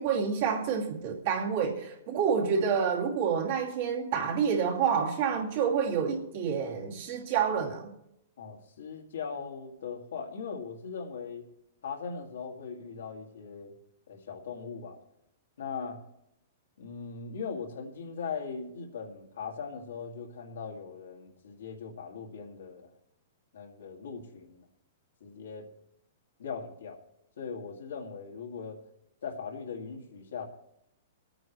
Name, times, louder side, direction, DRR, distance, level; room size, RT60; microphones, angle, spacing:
voice 1, 0.0-7.9, right 6 dB, 55° right, -1 dB, 2.5 m, -28 dB
voice 2, 8.4-11.4 11.8-13.7 14.1-15.0 15.6-16.0 16.8-22.9 23.5-24.7 25.2-25.7 26.4-27.0 27.4-28.8 29.2-30.4, left 5 dB, 85° left, 1 dB, 2.2 m, -39 dB
24.0 x 9.0 x 3.2 m, 0.79 s
hypercardioid pair, 150°, 0 cm